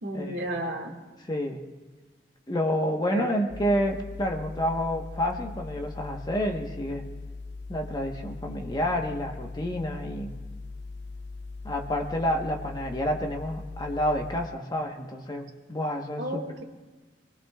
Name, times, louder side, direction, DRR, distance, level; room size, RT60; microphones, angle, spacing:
voice 1, 0.0-1.0 3.1-3.3 16.2-16.6, right 1 dB, 75° right, 1 dB, 2.1 m, -32 dB
voice 2, 1.3-1.6 2.5-7.0 7.7-10.4 11.6-16.4, equal, 25° left, 2 dB, 1.3 m, -29 dB
sound 1, 3.5-14.5, left 3 dB, 75° left, 0.6 m, -40 dB
27.0 x 19.5 x 2.4 m, 1.3 s
head